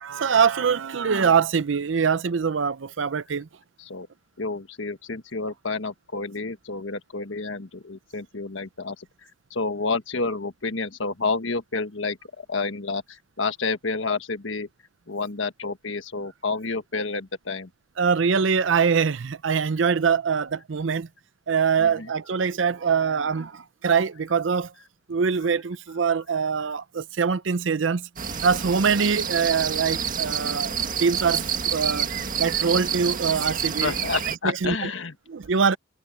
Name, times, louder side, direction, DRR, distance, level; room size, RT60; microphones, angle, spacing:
voice 1, 0.0-3.5 18.0-21.1 21.5-24.7 25.1-28.1 28.4-32.1 32.4-33.9 34.4-34.9 35.3-35.8, right 6 dB, 75° right, 0.6 m, -23 dB
voice 2, 4.4-9.1 9.5-14.7 15.1-17.7 21.8-22.1 33.8-35.1, left 3 dB, 85° left, 1.5 m, -29 dB
sound 1, 28.2-34.4, right 7 dB, 45° right, 1.8 m, -28 dB
head